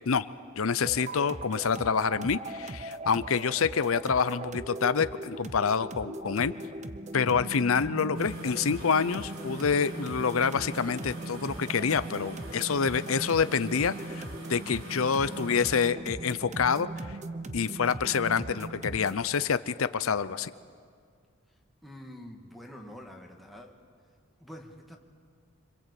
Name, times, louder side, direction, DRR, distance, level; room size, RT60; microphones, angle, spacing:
voice 1, 0.6-6.5 7.1-17.2 17.5-20.5, left 6 dB, 75° left, 14 dB, 0.6 m, -27 dB
sound 1, 0.8-19.3, right 2 dB, 35° right, 0.8 m, -39 dB
sound 2, 8.1-15.8, right 2 dB, 75° right, 4.1 m, -47 dB
voice 2, 21.8-23.8 24.4-25.0, equal, ahead, 1 dB, 2.0 m, -46 dB
26.0 x 25.5 x 8.4 m, 2.1 s
head